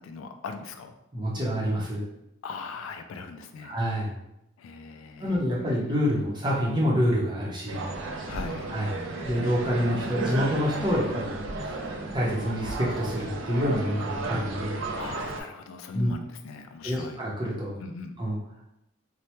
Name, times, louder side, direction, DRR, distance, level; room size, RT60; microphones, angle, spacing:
voice 1, 0.0-0.9 2.4-3.8 4.6-5.4 8.3-8.7 15.0-17.2 17.8-18.2, left 4 dB, 85° left, 7 dB, 0.3 m, -39 dB
voice 2, 1.1-2.1 3.6-4.1 5.2-7.9 8.7-8.9 9.3-11.4 11.6-11.8 12.1-14.8 15.9-16.1 16.8-17.8 18.2-18.4, equal, 20° right, -4 dB, 0.6 m, -27 dB
sound 1, 7.7-15.4, right 2 dB, 70° right, 0.4 m, -33 dB
3.1 x 2.1 x 2.9 m, 0.83 s
head